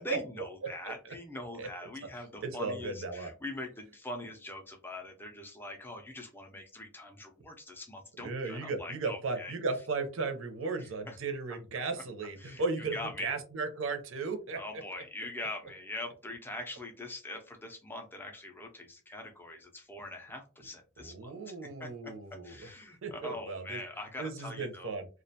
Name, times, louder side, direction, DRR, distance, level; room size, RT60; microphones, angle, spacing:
voice 1, 0.0-9.5 10.8-11.2 12.4-12.6 12.9-13.3 14.6-24.9, left 2 dB, 10° left, 3 dB, 0.4 m, -43 dB
voice 2, 0.8-1.1 1.6-1.7 2.4-3.3 8.2-14.6 21.0-22.7 23.0-23.8 24.2-25.1, right 4 dB, 65° right, 6 dB, 0.5 m, -35 dB
2.4 x 2.2 x 2.7 m, 0.33 s
head